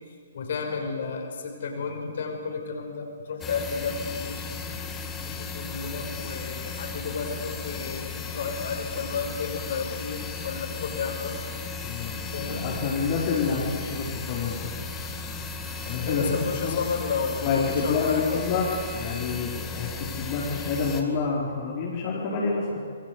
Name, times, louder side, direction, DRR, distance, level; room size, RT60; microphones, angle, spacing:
voice 1, 0.3-4.5 5.3-11.3 12.3-12.8 16.1-18.4, left 5 dB, 55° left, 2 dB, 6.2 m, -32 dB
sound 1, 3.4-21.0, left 4 dB, 15° left, 2.5 m, -35 dB
voice 2, 11.8-14.7 15.8-16.8 17.4-22.8, left 4 dB, 35° left, -5 dB, 4.5 m, -28 dB
27.5 x 22.5 x 8.2 m, 2.2 s
figure-of-eight pair, 125°, 0 cm